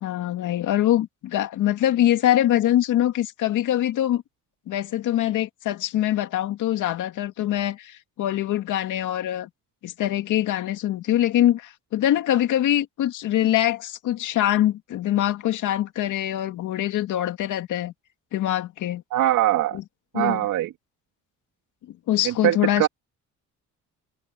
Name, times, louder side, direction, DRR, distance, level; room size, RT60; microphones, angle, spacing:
voice 1, 0.0-4.2 4.7-9.5 9.8-17.9 18.3-19.0 19.7-19.8 20.1-20.4 22.1-22.9, left 12 dB, 80° left, 2.4 m, -23 dB
voice 2, 19.1-19.8 20.1-20.7 22.2-22.9, right 13 dB, 85° right, 3.0 m, -22 dB
cardioid pair, 90°, 30 cm